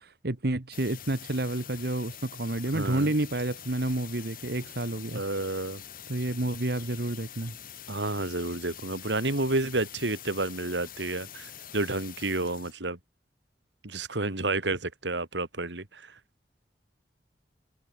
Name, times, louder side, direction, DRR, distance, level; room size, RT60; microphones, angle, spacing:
voice 1, 0.0-5.2 6.1-7.5, right 1 dB, 60° right, 1.5 m, -30 dB
sound 1, 0.7-12.7, left 9 dB, 55° left, 4.8 m, -45 dB
voice 2, 2.7-3.1 5.1-5.8 7.9-13.0 13.8-16.2, right 2 dB, 85° right, 2.7 m, -30 dB
head